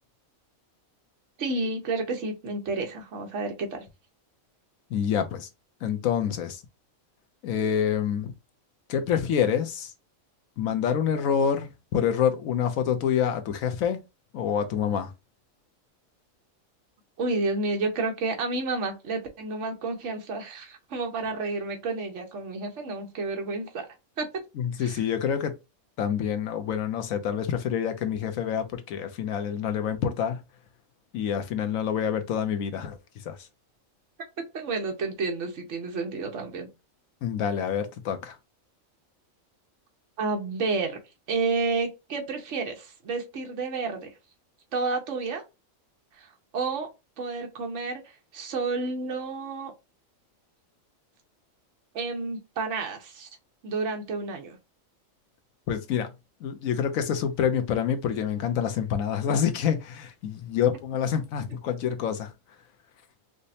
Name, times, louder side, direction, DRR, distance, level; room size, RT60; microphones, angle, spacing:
voice 1, 1.4-3.8 17.2-23.9 24.2-24.4 24.8-25.0 34.5-36.7 40.2-41.0 41.3-44.1 44.7-45.4 46.2-46.3 46.5-46.9 47.2-48.0 48.3-49.7 51.9-53.3 53.6-54.6, right 3 dB, 65° right, 1.3 m, -30 dB
voice 2, 4.9-5.5 5.8-6.6 7.4-8.3 8.9-9.9 10.6-14.0 14.3-15.1 24.5-25.5 26.0-30.4 31.1-33.5 37.2-38.4 55.7-56.1 56.4-62.3, left 8 dB, 80° left, 1.1 m, -27 dB
5.0 x 2.2 x 2.6 m
omnidirectional pair, 1.4 m